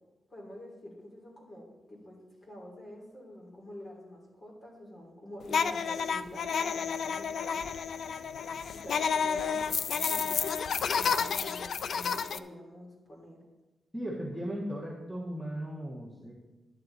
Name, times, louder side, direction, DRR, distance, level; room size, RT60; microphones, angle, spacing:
voice 1, 0.3-7.6 8.7-13.4, left 1 dB, 30° left, -2 dB, 3.2 m, -47 dB
sound 1, 5.5-12.4, left 6 dB, 60° left, 0.4 m, -30 dB
voice 2, 13.9-16.3, equal, ahead, -4 dB, 1.4 m, -37 dB
11.5 x 9.6 x 4.0 m, 1.1 s
wide cardioid pair, 150°, 0 cm